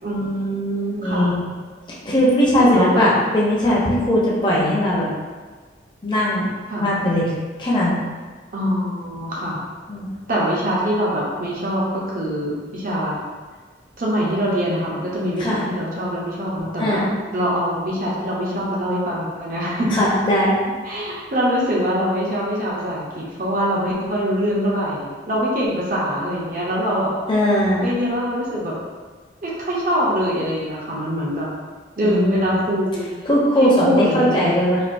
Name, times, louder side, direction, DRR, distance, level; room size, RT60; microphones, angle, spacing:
voice 1, 0.0-1.3 2.6-3.0 6.7-6.9 8.5-9.6 10.3-13.2 14.0-17.0 17.3-19.9 20.8-27.1 27.8-28.7 29.4-31.5 32.0-33.1 33.6-34.6, equal, 50° right, -5 dB, 0.8 m, -23 dB
voice 2, 1.0-1.4 1.9-5.1 6.0-6.5 6.8-7.3 7.6-8.0 9.9-10.1 15.4-15.6 16.8-17.1 19.9-20.5 27.3-27.9 32.0-32.6 33.3-34.8, equal, 25° left, -6 dB, 0.7 m, -19 dB
4.3 x 2.6 x 2.6 m, 1.4 s
head